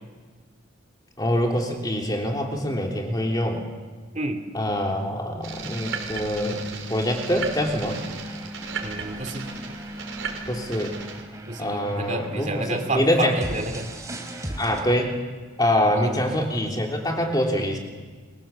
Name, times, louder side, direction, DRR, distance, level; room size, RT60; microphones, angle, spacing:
voice 1, 1.2-3.6 4.5-8.0 10.5-10.9 11.6-13.3 14.6-15.1 15.6-17.8, equal, 20° left, 1 dB, 3.3 m, -25 dB
sound 1, 5.4-11.2, right 4 dB, 85° right, 4.5 m, -34 dB
sound 2, 7.9-14.8, right 1 dB, 15° right, 3.1 m, -39 dB
voice 2, 8.8-9.5 11.5-13.9 16.0-16.2, right 2 dB, 35° right, 6 dB, 2.4 m, -30 dB
29.0 x 23.0 x 7.4 m, 1.4 s
head